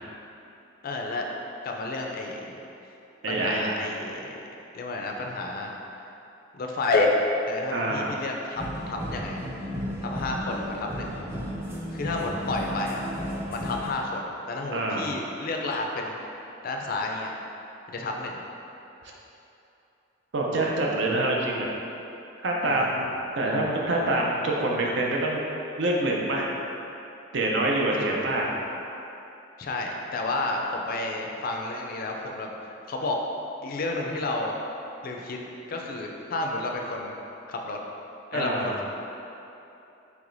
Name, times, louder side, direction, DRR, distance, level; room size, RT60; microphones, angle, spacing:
voice 1, 0.8-1.3 1.6-2.6 3.3-4.4 4.7-5.8 6.5-7.2 7.5-9.4 10.0-11.1 11.9-13.0 13.5-16.2 16.6-17.3 17.9-18.4 22.7-23.0 27.9-28.2 29.6-33.2 33.6-34.5 35.0-35.4 35.7-37.2 37.5-37.8 38.3-38.8, left 2 dB, 50° left, 1 dB, 0.4 m, -30 dB
voice 2, 3.2-3.7 7.7-8.2 14.7-15.1 20.3-21.7 22.4-25.5 25.8-26.5 27.3-28.5 38.3-38.7, right 2 dB, 65° right, -2 dB, 0.5 m, -26 dB
sound 1, 8.5-13.9, equal, 10° right, 0.4 m, -34 dB
4.7 x 3.2 x 2.6 m, 2.9 s
head